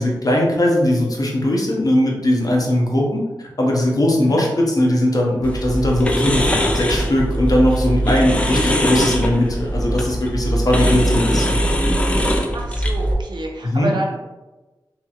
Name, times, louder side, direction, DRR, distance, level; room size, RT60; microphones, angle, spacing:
voice 1, 0.0-6.5 6.7-11.6 13.7-13.9, left 1 dB, 50° left, -1 dB, 0.7 m, -19 dB
sound 1, 5.4-13.1, equal, 15° left, 0.4 m, -20 dB
voice 2, 12.5-14.2, right 2 dB, 65° right, 0 dB, 0.5 m, -28 dB
2.8 x 2.5 x 2.8 m, 1.2 s
wide cardioid pair, 70°, 8 cm